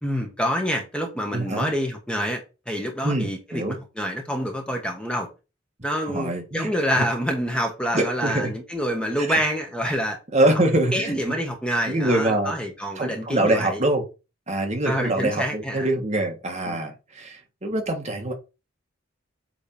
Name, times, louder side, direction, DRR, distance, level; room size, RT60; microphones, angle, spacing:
voice 1, 0.0-5.3 5.8-10.2 10.4-10.6 10.9-13.8 14.8-15.9 16.7-16.8, equal, 5° left, 1.5 m, -27 dB
voice 2, 1.3-1.7 3.0-3.8 6.1-6.7 7.0-7.1 7.9-8.5 9.2-9.4 10.3-11.4 11.9-12.5 13.0-14.0 14.5-18.3, right 1 dB, 35° right, 1.6 m, -24 dB
8.6 x 3.5 x 4.4 m
head